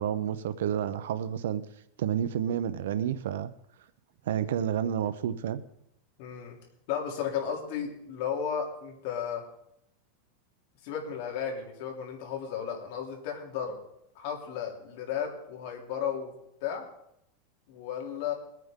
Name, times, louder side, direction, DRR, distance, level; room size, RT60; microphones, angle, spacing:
voice 1, 0.0-1.6 2.0-3.5 4.3-5.6, right 9 dB, 85° right, 12 dB, 0.7 m, -30 dB
voice 2, 6.2-6.6 6.9-9.4 10.8-13.8 14.1-16.3 16.6-16.8 17.7-18.3, left 8 dB, 55° left, 0 dB, 3.1 m, -34 dB
22.0 x 9.2 x 3.7 m, 0.77 s
supercardioid pair, 160°, 0 cm